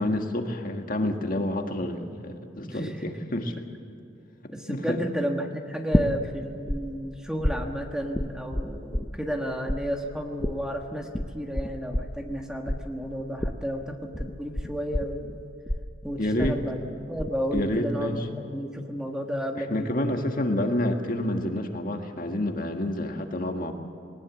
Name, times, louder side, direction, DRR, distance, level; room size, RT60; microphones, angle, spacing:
voice 1, 0.0-3.6 4.7-5.0 16.2-16.6 17.5-18.3 19.6-23.7, left 1 dB, 45° left, 4 dB, 1.7 m, -28 dB
voice 2, 4.5-11.1 11.3-15.4 16.0-16.8 17.1-20.2, equal, 5° right, 2 dB, 1.4 m, -32 dB
sound 1, 5.9-6.8 7.0-9.4 9.7-17.3 17.6-18.1, left 1 dB, 15° left, 0.7 m, -29 dB
20.5 x 20.0 x 7.3 m, 2.7 s
head